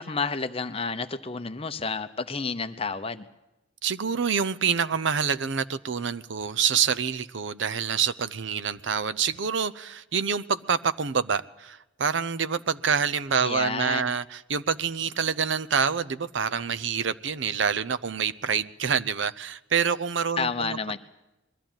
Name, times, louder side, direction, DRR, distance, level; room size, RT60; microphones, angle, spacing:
voice 1, 0.0-3.3 13.4-14.2 20.4-21.0, left 4 dB, 30° left, 0.7 m, -30 dB
voice 2, 3.8-20.8, right 6 dB, 70° right, 0.7 m, -27 dB
21.5 x 14.0 x 8.9 m
head